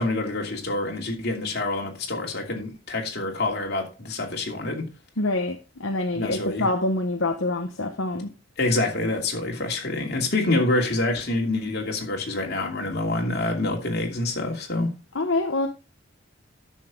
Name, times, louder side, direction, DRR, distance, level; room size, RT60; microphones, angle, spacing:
voice 1, 0.0-4.9 6.1-6.7 8.6-14.9, left 2 dB, 50° left, 2.8 m, -26 dB
voice 2, 5.2-8.3 15.1-15.7, left 2 dB, 70° left, 1.0 m, -26 dB
11.5 x 6.6 x 3.8 m
head